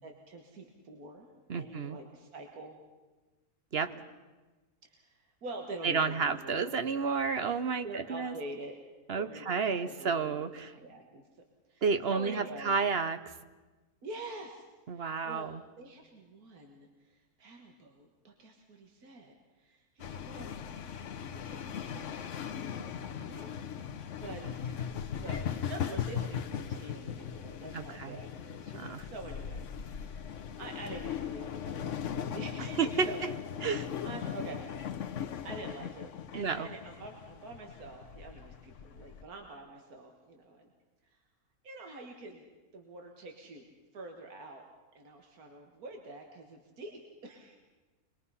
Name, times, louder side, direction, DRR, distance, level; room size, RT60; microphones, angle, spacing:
voice 1, 0.0-2.8 3.9-4.0 4.8-6.6 7.8-8.7 9.1-11.2 11.7-11.8 12.1-12.8 14.0-14.7 14.9-20.5 21.3-22.2 22.6-23.9 24.2-33.2 34.0-34.7 35.4-40.7 41.0-41.2 41.6-42.4 42.7-43.7 43.9-44.6 45.0-47.6, right 2 dB, 75° right, 2 dB, 2.1 m, -46 dB
voice 2, 1.5-2.0 3.7-3.9 5.8-8.3 9.1-10.7 11.8-13.2 14.9-15.6 27.7-28.2 28.7-29.1 32.8-33.1 33.6-33.9 36.3-36.7, right 5 dB, 50° right, 10 dB, 0.9 m, -31 dB
sound 1, 20.0-39.2, left 8 dB, 60° left, 1.2 m, -39 dB
25.5 x 21.0 x 5.6 m, 1.2 s
omnidirectional pair, 1.6 m